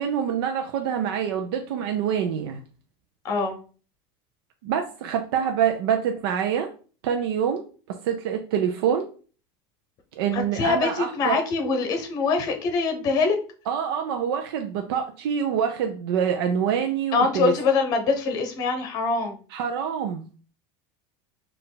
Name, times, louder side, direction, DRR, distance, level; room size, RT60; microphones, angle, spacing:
voice 1, 0.0-2.6 4.6-6.7 7.0-9.1 10.2-11.4 13.7-17.5 19.5-20.3, right 8 dB, 85° right, 4 dB, 0.6 m, -26 dB
voice 2, 3.2-3.6 10.3-13.4 17.1-19.4, left 4 dB, 30° left, 5 dB, 0.8 m, -24 dB
4.5 x 2.5 x 3.9 m, 0.39 s
cardioid pair, 175°, 12 cm